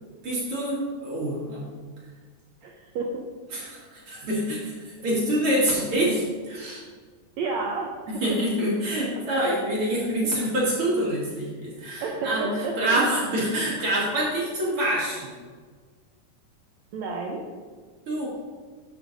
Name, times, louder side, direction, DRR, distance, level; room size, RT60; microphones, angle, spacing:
voice 1, 0.2-1.6 3.5-6.2 6.5-6.8 8.2-12.5 12.8-15.3 18.1-18.3, right 1 dB, 45° right, -6 dB, 2.4 m, -26 dB
voice 2, 2.6-3.3 3.6-3.7 5.9-6.3 7.4-8.0 10.2-10.3 12.0-13.1 16.9-17.4, right 3 dB, 75° right, 0 dB, 1.6 m, -31 dB
12.5 x 6.4 x 2.6 m, 1.5 s
omnidirectional pair, 4.0 m